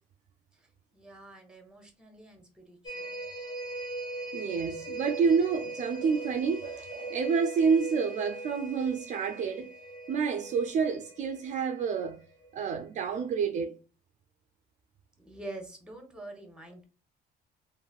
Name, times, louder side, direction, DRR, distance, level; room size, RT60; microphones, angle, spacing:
voice 1, 0.9-3.2 15.2-16.8, right 2 dB, 5° right, 0.9 m, -46 dB
sound 1, 2.9-12.6 13.0-13.1, right 2 dB, 25° left, 0.8 m, -41 dB
voice 2, 4.3-9.7 10.1-12.2 12.5-13.7, right 6 dB, 45° right, 0.4 m, -28 dB
3.1 x 2.5 x 2.3 m
cardioid pair, 110°, 17 cm